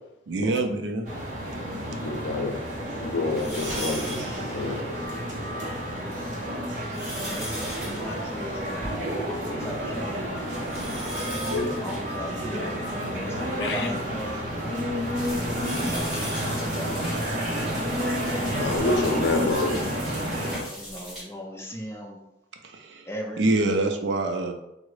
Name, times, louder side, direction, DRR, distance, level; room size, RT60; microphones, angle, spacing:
voice 1, 0.3-1.1 22.6-23.1 23.4-24.5, right 2 dB, 90° right, 5 dB, 0.4 m, -25 dB
sound 1, 1.0-20.6, equal, 45° right, 0.7 m, -30 dB
voice 2, 2.0-2.6 3.0-4.8 11.5-11.7 13.6-13.9 18.6-19.8, left 2 dB, 85° left, 3 dB, 0.5 m, -27 dB
sound 2, 3.3-5.2 5.7-5.8 6.5-9.5 9.8-9.9 10.4-13.5 14.1-18.0 18.7-18.8 20.1-20.2, right 1 dB, 15° right, 1.1 m, -39 dB
voice 3, 7.1-10.3 11.7-14.4 15.7-17.3 18.6-20.1 20.7-22.2 23.0-23.8, equal, 15° left, 0 dB, 0.5 m, -38 dB
sound 3, 15.1-21.2, equal, ahead, 1.4 m, -40 dB
3.5 x 2.0 x 3.2 m, 0.88 s
head